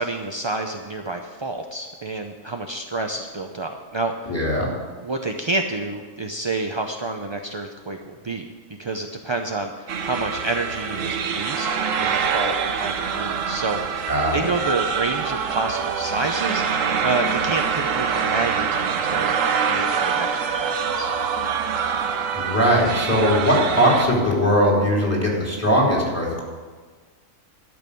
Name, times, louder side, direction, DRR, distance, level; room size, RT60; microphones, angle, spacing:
voice 1, 0.0-4.3 5.0-8.4 8.8-11.7 12.0-14.1 14.3-19.4 19.7-21.1, right 2 dB, 40° right, 3 dB, 0.4 m, -29 dB
voice 2, 4.3-4.7 14.1-14.4 22.3-26.4, equal, 10° left, -4 dB, 3.3 m, -20 dB
sound 1, 9.9-24.1, right 6 dB, 75° right, 1.2 m, -25 dB
12.5 x 6.2 x 8.4 m, 1.4 s
omnidirectional pair, 1.4 m